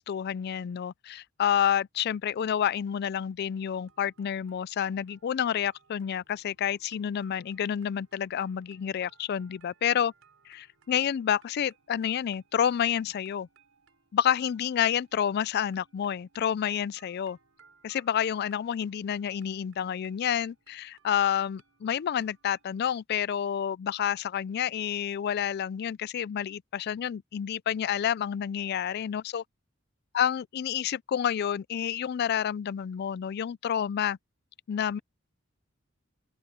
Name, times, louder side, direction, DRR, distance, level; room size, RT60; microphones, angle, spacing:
voice 1, 0.0-10.1 10.5-13.5 14.1-17.4 17.8-29.4 30.1-34.2 34.7-35.0, left 9 dB, 50° left, 0.3 m, -29 dB
sound 1, 3.6-23.0, right 5 dB, 90° right, 4.5 m, -65 dB
open air
head